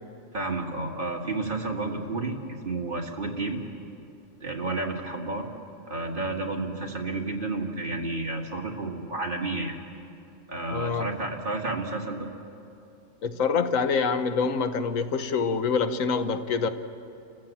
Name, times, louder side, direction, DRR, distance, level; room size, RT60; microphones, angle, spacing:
voice 1, 0.3-2.4 2.6-3.6 4.4-5.5 5.9-9.8 10.5-12.3, right 2 dB, 40° right, 1 dB, 2.0 m, -31 dB
voice 2, 10.7-11.1 13.2-16.7, left 5 dB, 80° left, 9 dB, 1.3 m, -26 dB
30.0 x 15.0 x 7.3 m, 2.6 s
omnidirectional pair, 1.4 m